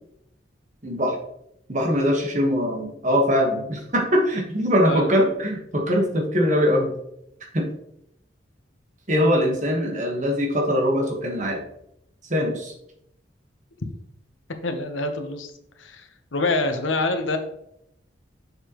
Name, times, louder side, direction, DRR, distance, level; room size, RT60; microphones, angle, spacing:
voice 1, 0.8-1.2 1.7-6.9 7.5-7.7 9.1-11.6 12.2-12.7, equal, 40° right, 1 dB, 1.5 m, -22 dB
voice 2, 14.6-15.5 15.8-17.4, left 2 dB, 80° left, 7 dB, 1.0 m, -26 dB
6.9 x 6.5 x 3.0 m, 0.76 s
head